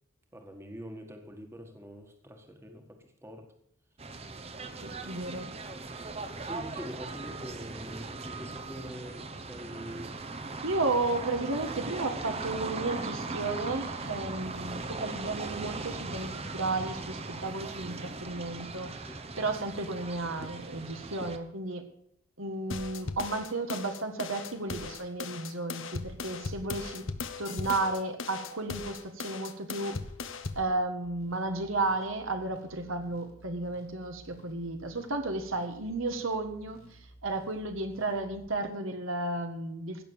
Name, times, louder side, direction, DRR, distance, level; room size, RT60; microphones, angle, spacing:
voice 1, 0.3-3.5 5.0-5.2 6.4-10.2 19.1-19.5, equal, 10° right, 4 dB, 1.7 m, -45 dB
sound 1, 4.0-21.4, right 3 dB, 30° right, 1.0 m, -39 dB
voice 2, 4.8-5.5 10.6-21.9 22.4-27.1 27.4-30.0 30.5-36.8 37.2-40.0, right 2 dB, 65° right, 6 dB, 1.7 m, -33 dB
sound 2, 22.7-30.7, left 4 dB, 65° left, 1.1 m, -38 dB
sound 3, 31.0-38.6, right 1 dB, 80° left, 2.8 m, -55 dB
16.5 x 6.8 x 7.1 m, 0.71 s
head